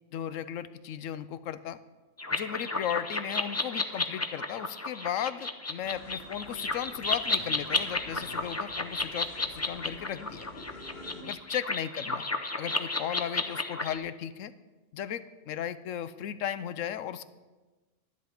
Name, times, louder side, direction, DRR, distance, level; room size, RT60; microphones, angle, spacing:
voice 1, 0.1-1.8 2.3-10.5 11.2-12.3 12.6-14.5 14.9-17.2, left 10 dB, 85° left, 14 dB, 1.0 m, -35 dB
sound 1, 2.2-14.0, left 2 dB, 25° left, 0.3 m, -32 dB
sound 2, 5.8-11.2, left 2 dB, 50° left, 1.7 m, -48 dB
11.5 x 11.0 x 4.9 m, 1.2 s
omnidirectional pair, 1.3 m